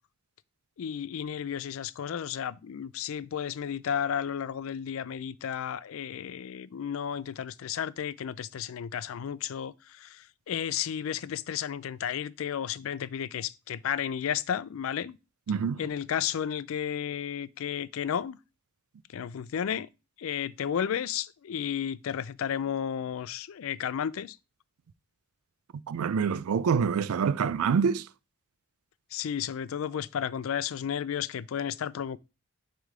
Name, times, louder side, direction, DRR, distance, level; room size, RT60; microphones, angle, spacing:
voice 1, 0.8-15.2 15.8-18.4 19.1-19.9 20.2-24.4 29.1-32.2, left 8 dB, 70° left, 0.4 m, -33 dB
voice 2, 15.5-15.8 25.9-28.1, right 6 dB, 85° right, 0.4 m, -26 dB
6.4 x 3.4 x 4.8 m
head